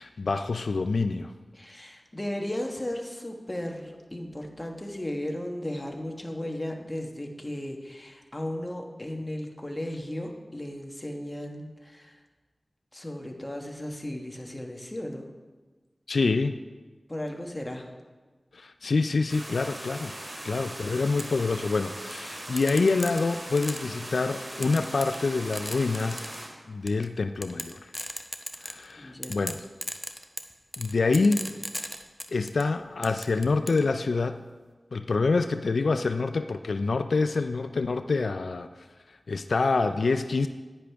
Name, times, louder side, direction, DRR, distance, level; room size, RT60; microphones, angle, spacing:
voice 1, 0.0-1.3 16.1-16.6 18.5-20.1 20.4-26.3 26.7-27.9 28.6-29.6 30.8-31.4 32.3-34.4 34.9-38.7 39.3-40.5, left 3 dB, 85° left, 9 dB, 0.3 m, -26 dB
voice 2, 1.5-12.2 12.9-15.3 17.1-17.9 29.0-29.5 39.9-40.0, left 1 dB, 25° left, 2 dB, 1.2 m, -35 dB
sound 1, 19.3-26.5, right 1 dB, 50° right, 2.1 m, -40 dB
sound 2, 21.2-21.3 22.6-24.0 24.6-25.3 25.5-26.4 26.9-27.0 27.4-28.9 29.2-32.6 33.0-33.8, equal, 5° left, 0.7 m, -36 dB
10.0 x 9.7 x 3.4 m, 1.3 s
wide cardioid pair, 75°, 0 cm